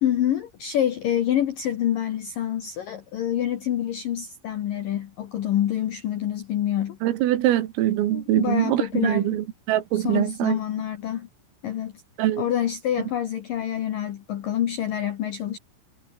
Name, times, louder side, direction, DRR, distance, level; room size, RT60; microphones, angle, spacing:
voice 1, 0.0-7.0 8.1-9.4 9.9-11.3 11.6-12.0 12.4-15.6, left 11 dB, 70° left, 2.1 m, -27 dB
voice 2, 7.0-10.6 12.2-12.4, right 13 dB, 80° right, 4.4 m, -23 dB
omnidirectional pair, 5.9 m